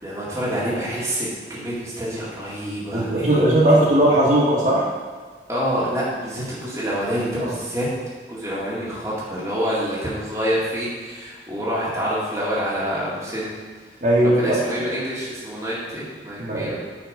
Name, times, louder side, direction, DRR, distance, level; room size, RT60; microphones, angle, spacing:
voice 1, 0.0-3.4 5.5-7.9 8.3-13.5 14.2-16.8, equal, 15° right, -8 dB, 2.0 m, -27 dB
voice 2, 2.9-4.8 7.4-7.5 14.0-14.9 16.4-16.8, right 1 dB, 45° right, -7 dB, 2.0 m, -18 dB
9.4 x 4.6 x 5.1 m, 1.5 s
head